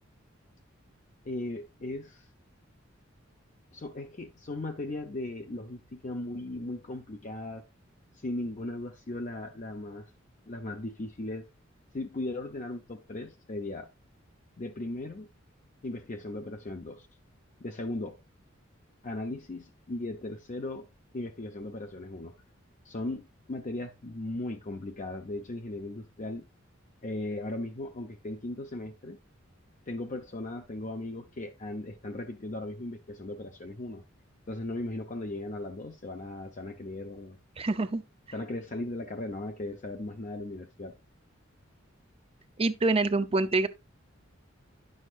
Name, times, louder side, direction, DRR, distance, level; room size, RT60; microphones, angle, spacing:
voice 1, 1.2-2.2 3.7-7.6 8.2-10.1 10.5-11.5 11.9-13.9 14.6-15.3 15.8-17.1 17.6-18.2 19.0-20.9 21.1-22.3 22.8-26.4 27.0-29.2 29.9-34.0 34.5-37.4 38.3-40.9, left 2 dB, 40° left, 0.6 m, -37 dB
voice 2, 37.6-38.0 42.6-43.7, right 3 dB, 30° right, 0.5 m, -26 dB
10.0 x 6.4 x 2.4 m
head